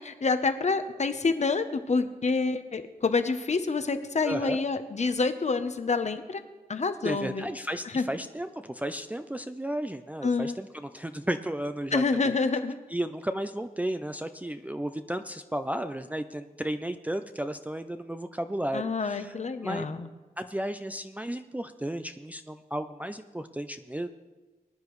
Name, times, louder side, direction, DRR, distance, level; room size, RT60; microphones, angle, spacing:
voice 1, 0.0-6.4 6.7-7.5 7.9-8.1 10.2-10.6 11.9-12.7 18.7-20.1, left 4 dB, 50° left, 10 dB, 0.8 m, -27 dB
voice 2, 4.2-4.6 7.0-12.4 12.9-19.3 19.6-19.9 20.4-24.1, right 1 dB, 10° right, 8 dB, 0.4 m, -33 dB
20.5 x 10.5 x 3.2 m, 1.2 s
wide cardioid pair, 110°, 16 cm